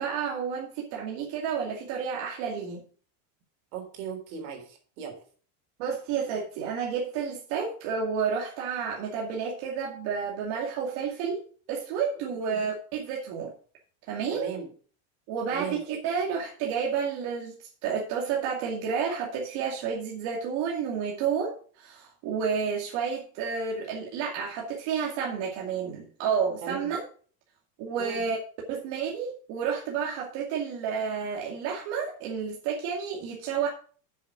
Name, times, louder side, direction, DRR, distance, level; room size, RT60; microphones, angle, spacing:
voice 1, 0.0-2.8 5.8-11.4 11.7-13.5 14.1-14.5 15.3-27.0 27.8-28.4 28.7-33.7, right 6 dB, 65° right, -2 dB, 2.4 m, -30 dB
voice 2, 3.7-5.2 12.3-12.6 14.3-14.7 15.5-15.8 26.6-27.0 28.0-28.2, right 6 dB, 85° right, 3 dB, 3.7 m, -36 dB
7.4 x 7.3 x 5.9 m, 0.43 s
cardioid pair, 140°, 42 cm